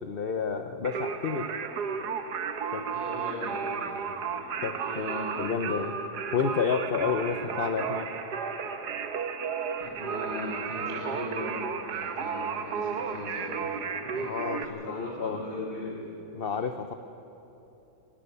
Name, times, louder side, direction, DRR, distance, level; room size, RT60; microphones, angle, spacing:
voice 1, 0.0-1.5 2.7-2.9 4.6-5.9 6.3-8.1 14.2-15.4 16.3-16.9, left 6 dB, 50° left, 8 dB, 0.7 m, -30 dB
Singing, 0.8-14.6, right 6 dB, 70° right, 1.6 m, -33 dB
voice 2, 2.9-4.1 4.7-5.9 7.3-7.5 9.8-11.6 11.9-13.9 14.1-16.0, left 1 dB, 25° right, -5 dB, 7.4 m, -38 dB
22.5 x 19.0 x 6.9 m, 2.9 s
omnidirectional pair, 1.9 m